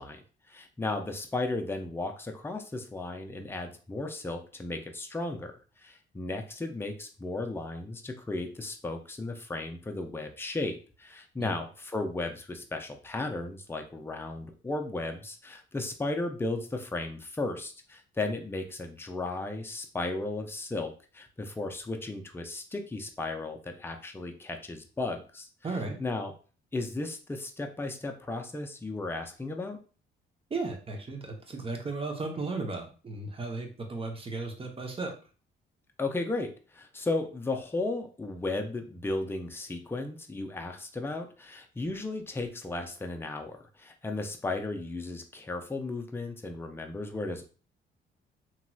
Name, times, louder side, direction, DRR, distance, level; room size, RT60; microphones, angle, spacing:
voice 1, 0.0-5.5 5.8-25.5 26.0-26.3 26.7-29.8 36.0-47.5, left 2 dB, 10° left, 4 dB, 0.5 m, -35 dB
voice 2, 25.6-26.0 30.5-35.1, right 3 dB, 30° right, 3 dB, 0.8 m, -35 dB
3.0 x 2.8 x 2.3 m, 0.37 s
cardioid pair, 90°, 20 cm